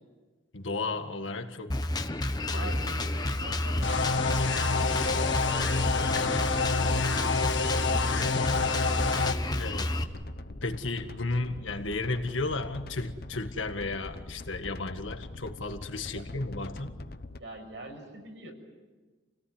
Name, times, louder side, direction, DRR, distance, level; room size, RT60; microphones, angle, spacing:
voice 1, 0.5-1.7 2.5-2.8 6.1-6.4 9.6-10.0 10.6-17.0, left 3 dB, 90° left, 6 dB, 1.9 m, -34 dB
Drum kit, 1.7-10.0, left 1 dB, 20° left, 1.1 m, -30 dB
voice 2, 2.5-9.0 16.1-16.3 17.4-18.5, right 1 dB, 70° right, 2 dB, 6.8 m, -45 dB
sound 1, 3.3-17.4, left 2 dB, 50° left, 0.9 m, -43 dB
sound 2, 3.8-9.3, left 4 dB, 75° left, 1.5 m, -28 dB
29.5 x 18.0 x 9.6 m, 1.3 s
head